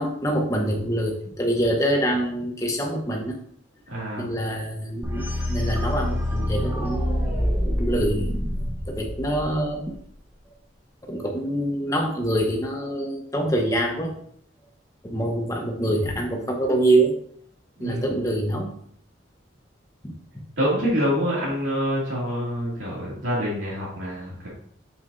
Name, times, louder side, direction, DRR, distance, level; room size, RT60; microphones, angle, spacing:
voice 1, 0.0-3.4 4.2-7.3 7.8-8.3 8.9-10.0 11.1-14.1 15.0-17.1 17.8-18.7 20.0-20.1, right 1 dB, 15° left, 1 dB, 1.1 m, -25 dB
voice 2, 3.9-4.3 17.8-18.0 20.6-24.5, equal, 80° right, -8 dB, 2.5 m, -26 dB
sound 1, 5.0-9.9, left 1 dB, 10° right, 1.0 m, -26 dB
7.4 x 6.4 x 2.7 m, 0.63 s
head